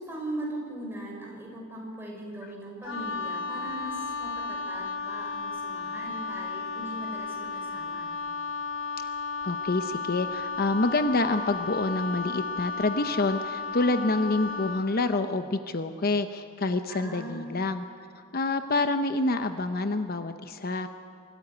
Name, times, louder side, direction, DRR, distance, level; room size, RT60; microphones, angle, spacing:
voice 1, 0.0-8.1 16.9-17.5, right 1 dB, 10° right, -2 dB, 6.1 m, -39 dB
Wind instrument woodwind instrument, 2.8-14.9, left 4 dB, 70° left, 1.4 m, -34 dB
voice 2, 9.4-17.8 18.1-20.9, left 2 dB, 50° left, 9 dB, 0.8 m, -27 dB
25.0 x 14.5 x 9.8 m, 2.4 s
head